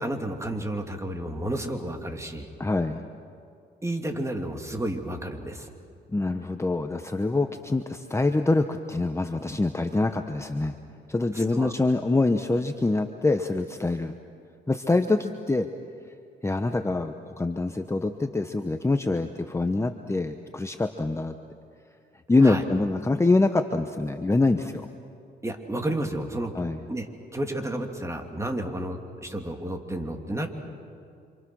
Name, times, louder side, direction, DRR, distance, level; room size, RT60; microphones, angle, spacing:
voice 1, 0.0-2.5 3.8-5.7 11.3-11.7 22.4-22.6 25.4-26.5 26.9-30.5, right 1 dB, 15° right, 4 dB, 3.0 m, -31 dB
voice 2, 2.6-3.0 6.1-10.8 11.1-14.1 14.7-15.7 16.4-21.3 22.3-24.9 26.5-26.8, left 2 dB, 15° left, 7 dB, 1.0 m, -25 dB
28.0 x 27.0 x 6.3 m, 2.4 s
cardioid pair, 90°, 20 cm